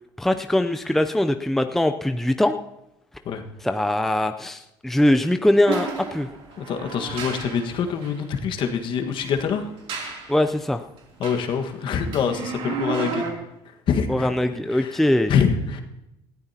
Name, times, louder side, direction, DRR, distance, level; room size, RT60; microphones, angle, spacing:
voice 1, 0.2-2.6 3.6-6.3 10.3-10.8 14.1-15.3, left 1 dB, 5° left, 7 dB, 0.5 m, -21 dB
sound 1, 5.7-8.2 9.1-10.5 11.0-13.3, right 5 dB, 60° right, 3.0 m, -33 dB
voice 2, 6.6-9.7 11.2-13.3 13.9-14.3 14.7-15.8, left 6 dB, 55° left, 5 dB, 1.6 m, -25 dB
20.0 x 14.0 x 2.9 m, 0.90 s
supercardioid pair, 100°, 10 cm